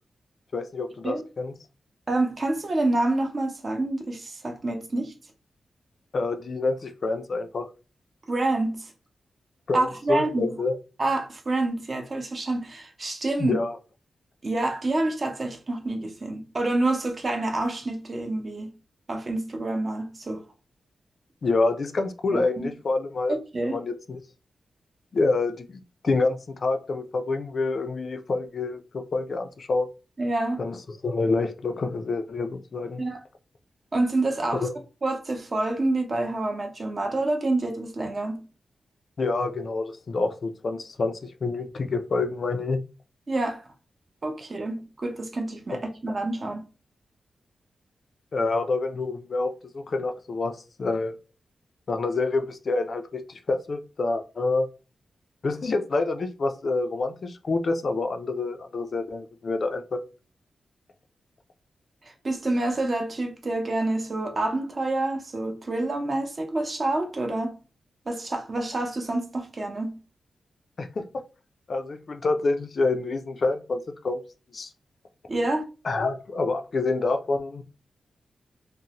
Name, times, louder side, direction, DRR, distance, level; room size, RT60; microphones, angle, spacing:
voice 1, 0.5-1.5 6.1-7.7 9.7-10.8 13.4-13.8 21.4-23.4 23.6-24.2 25.1-28.8 29.1-29.9 30.6-33.0 34.6-34.7 39.2-42.8 45.7-45.8 48.3-51.1 51.9-54.7 55.4-60.0 70.8-71.0 71.7-74.2 74.5-74.7 75.8-77.6, left 3 dB, 55° left, 0.3 m, -27 dB
voice 2, 2.1-5.1 8.3-8.9 9.7-10.5 11.0-13.6 14.4-18.7 19.1-20.4 22.3-22.7 23.3-23.8 30.2-30.6 33.0-33.2 33.9-34.7 35.0-38.4 43.3-43.6 44.2-46.6 62.2-67.5 68.1-70.0 75.3-75.6, right 2 dB, 40° right, 0.6 m, -27 dB
2.6 x 2.0 x 2.8 m
wide cardioid pair, 100°, 0 cm